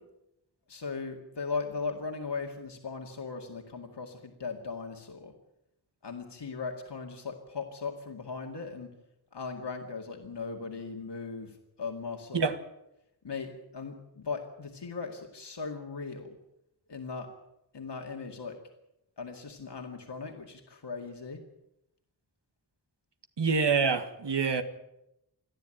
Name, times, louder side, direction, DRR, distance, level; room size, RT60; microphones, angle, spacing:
voice 1, 0.7-5.3 6.0-8.9 9.3-12.5 13.2-16.4 16.9-17.3 17.7-18.6 19.2-21.4, left 4 dB, 85° left, 2.2 m, -38 dB
voice 2, 23.4-24.6, right 5 dB, 85° right, 1.8 m, -26 dB
28.5 x 10.5 x 9.1 m
wide cardioid pair, 55°, 41 cm